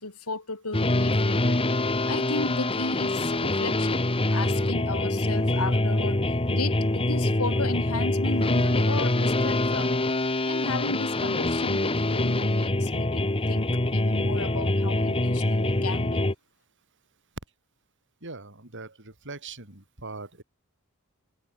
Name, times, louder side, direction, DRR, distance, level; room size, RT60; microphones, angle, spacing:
voice 1, 0.0-1.6 2.1-4.0 4.3-6.2 6.5-10.0 10.5-16.2, left 3 dB, 80° left, 3.8 m, -34 dB
sound 1, 0.7-16.3, left 1 dB, 25° left, 1.5 m, -25 dB
voice 2, 18.2-20.4, right 3 dB, 55° right, 5.3 m, -41 dB
head